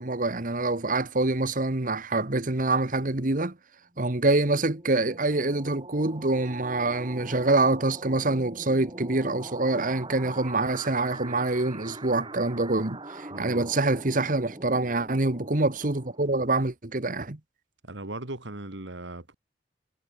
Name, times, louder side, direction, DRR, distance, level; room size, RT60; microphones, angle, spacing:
voice 1, 0.0-3.6 4.0-17.4, right 2 dB, 50° right, 1.6 m, -26 dB
sound 1, 4.2-16.6, right 2 dB, 30° right, 4.4 m, -43 dB
voice 2, 13.3-13.6 17.8-19.3, right 2 dB, 90° right, 2.7 m, -38 dB
head